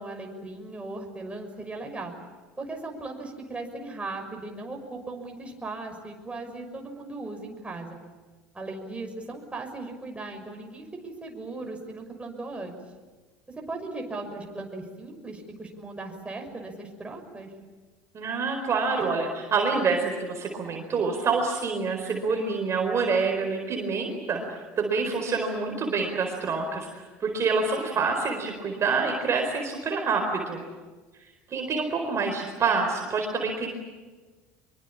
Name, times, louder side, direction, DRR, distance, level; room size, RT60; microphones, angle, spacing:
voice 1, 0.0-2.1 2.6-8.0 8.5-12.8 13.5-17.5, right 2 dB, 15° right, 2 dB, 6.1 m, -38 dB
voice 2, 18.1-30.6 31.5-33.7, right 4 dB, 35° right, 3 dB, 4.4 m, -27 dB
25.0 x 23.5 x 8.7 m, 1.3 s
hypercardioid pair, 70°, 8 cm